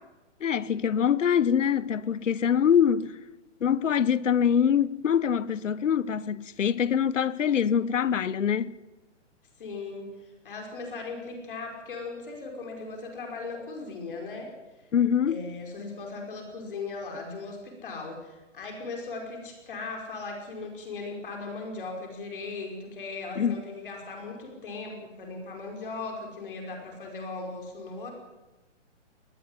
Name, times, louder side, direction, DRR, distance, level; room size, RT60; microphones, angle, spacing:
voice 1, 0.4-3.1 3.6-8.8 14.9-15.4 23.4-23.6, left 8 dB, 85° left, 1.1 m, -24 dB
voice 2, 9.6-14.5 15.3-28.1, left 3 dB, 45° left, 5.3 m, -38 dB
21.0 x 19.0 x 9.9 m
hypercardioid pair, 180°, 36 cm